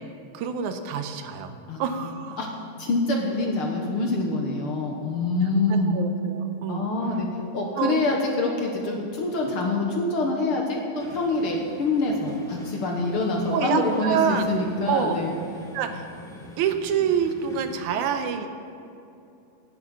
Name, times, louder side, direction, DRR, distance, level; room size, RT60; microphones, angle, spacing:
voice 1, 0.3-2.4 5.7-6.9 7.8-8.0 13.5-14.5 14.9-15.2 15.7-16.1 16.6-18.5, right 7 dB, 85° right, 8 dB, 2.2 m, -27 dB
voice 2, 1.7-2.1 2.4-2.5 2.8-5.9 6.7-7.3 7.5-15.3, left 2 dB, 60° left, 0 dB, 1.7 m, -25 dB
sound 1, 11.0-17.8, left 1 dB, 5° left, 0.3 m, -45 dB
10.0 x 8.5 x 8.1 m, 2.7 s
omnidirectional pair, 3.4 m